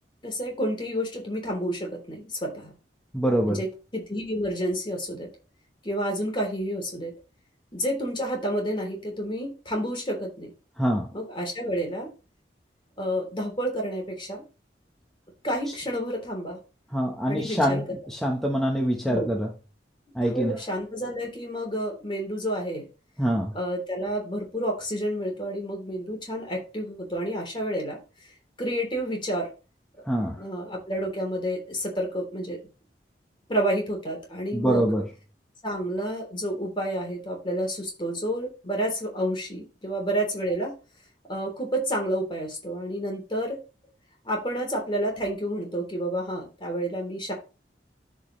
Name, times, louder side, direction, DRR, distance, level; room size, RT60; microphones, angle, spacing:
voice 1, 0.2-2.7 3.4-5.3 5.8-7.1 7.7-10.5 11.1-12.1 13.0-14.4 15.4-16.6 17.2-17.8 19.0-19.3 20.3-22.9 23.5-28.0 28.6-29.5 30.4-32.6 33.5-34.9 35.6-40.7 41.3-43.6 44.2-47.3, equal, 30° left, 1 dB, 3.4 m, -30 dB
voice 2, 3.1-3.6 10.8-11.1 16.9-19.5 20.1-20.6 23.2-23.5 30.0-30.4 34.5-35.1, equal, ahead, -1 dB, 1.1 m, -25 dB
13.0 x 5.2 x 3.2 m, 0.32 s
head